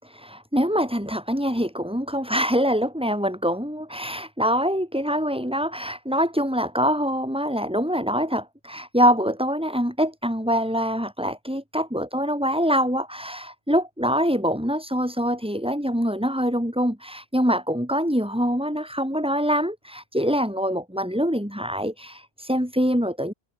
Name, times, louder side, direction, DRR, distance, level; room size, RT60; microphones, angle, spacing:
voice 1, 0.0-23.3, equal, 5° right, 5.8 m, -24 dB
omnidirectional pair, 1.1 m